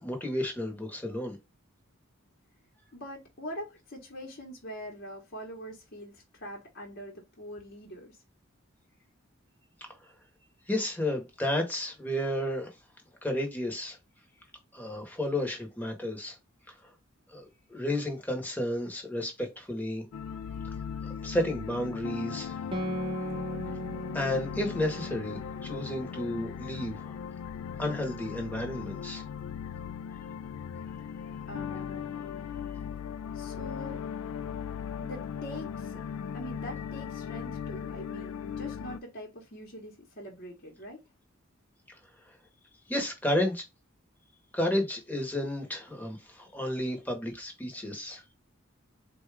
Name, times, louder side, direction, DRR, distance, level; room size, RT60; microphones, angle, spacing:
voice 1, 0.0-1.4 10.7-12.7 13.2-14.0 14.7-16.4 17.3-17.4 17.7-20.1 21.2-22.5 24.1-27.2 27.8-29.2 41.9-42.0 42.9-43.6 44.5-48.2, left 1 dB, 10° left, 0.9 m, -32 dB
voice 2, 2.9-8.2 31.5-32.3 33.3-34.0 35.0-36.0 36.3-41.0, equal, 50° left, 1.0 m, -43 dB
sound 1, 20.1-39.0, left 7 dB, 85° left, 0.3 m, -38 dB
Guitar, 22.7-27.7, right 1 dB, 25° right, 0.5 m, -39 dB
4.1 x 2.3 x 3.2 m
head